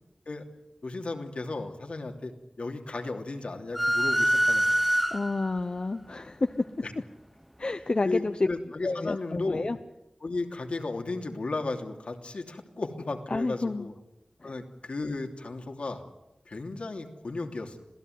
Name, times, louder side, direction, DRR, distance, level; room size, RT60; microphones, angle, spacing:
voice 1, 0.8-4.8 6.8-6.9 8.0-9.7 10.2-13.9 14.4-16.0 16.4-17.8, left 3 dB, 80° left, 3 dB, 3.0 m, -35 dB
sound 1, 3.7-5.6, equal, 5° right, 0.8 m, -25 dB
voice 2, 5.1-6.7 7.6-8.5 8.8-9.8 13.3-13.9 14.4-14.5, left 3 dB, 55° left, 8 dB, 1.0 m, -29 dB
27.0 x 17.0 x 9.5 m, 0.90 s
wide cardioid pair, 65°, 2 cm